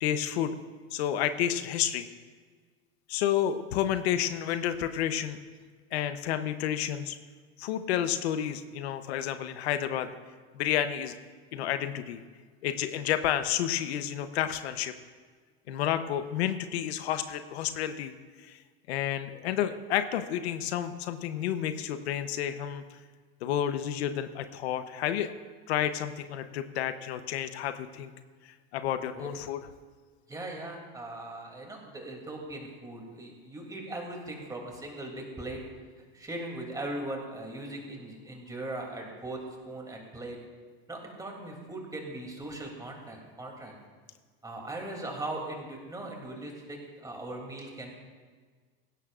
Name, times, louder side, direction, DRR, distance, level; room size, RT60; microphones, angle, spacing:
voice 1, 0.0-0.6 0.9-2.1 3.1-5.4 5.9-7.2 7.6-10.1 10.5-11.1 11.5-12.2 12.6-14.9 15.7-18.1 18.4-18.6 18.9-23.0 23.4-25.3 25.7-28.1 28.4-29.6, left 10 dB, 90° left, 10 dB, 0.9 m, -30 dB
voice 2, 30.3-35.6 36.0-40.4 40.9-43.7 44.4-47.9, right 2 dB, 10° right, 0 dB, 2.8 m, -39 dB
18.5 x 16.5 x 2.5 m, 1.5 s
supercardioid pair, 125°, 31 cm